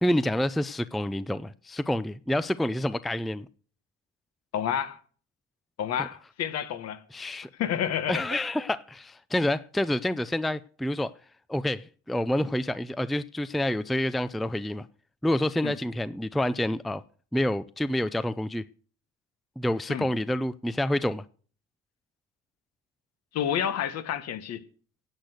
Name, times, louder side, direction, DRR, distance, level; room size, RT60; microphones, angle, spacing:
voice 1, 0.0-3.5 6.0-6.1 7.1-7.5 8.1-11.1 11.5-14.9 15.2-17.0 17.3-18.6 19.6-21.2, left 1 dB, ahead, 0.5 m, -28 dB
voice 2, 4.5-5.0 5.8-7.0 7.6-8.2 15.6-15.7 19.9-20.1 23.3-24.6, left 9 dB, 60° left, 1.5 m, -29 dB
10.5 x 8.2 x 8.0 m
supercardioid pair, 90°, 29 cm